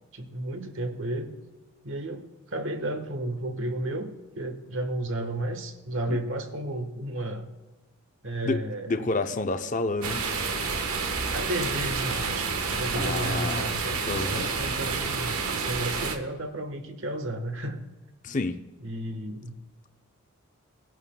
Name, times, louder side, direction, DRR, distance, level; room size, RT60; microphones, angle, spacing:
voice 1, 0.1-1.3 1.8-7.5 8.2-9.1 11.3-17.8 18.8-19.6, right 1 dB, 60° right, 6 dB, 1.3 m, -33 dB
voice 2, 8.4-10.2 12.9-13.7 14.1-14.5 18.2-18.6, left 2 dB, 35° left, 8 dB, 0.6 m, -29 dB
sound 1, 10.0-16.2, right 4 dB, 85° right, 1.2 m, -29 dB
20.5 x 11.0 x 2.2 m, 1.2 s
head